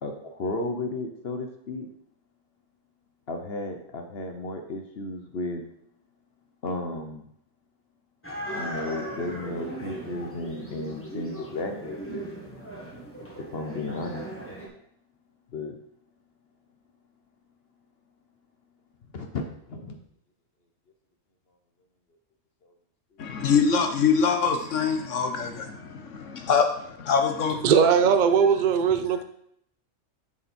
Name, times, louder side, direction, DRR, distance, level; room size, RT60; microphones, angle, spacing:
voice 1, 0.0-1.9 3.3-5.6 6.6-7.2 8.5-12.3 13.4-14.3 15.5-15.8 19.1-20.0, left 2 dB, 55° left, 4 dB, 1.1 m, -33 dB
sound 1, 8.2-14.7, right 1 dB, 10° left, 1.9 m, -38 dB
voice 2, 23.2-27.6, left 6 dB, 75° left, 5 dB, 1.4 m, -24 dB
voice 3, 27.6-29.2, right 7 dB, 50° right, 10 dB, 0.6 m, -19 dB
7.4 x 7.0 x 4.3 m, 0.71 s
omnidirectional pair, 1.3 m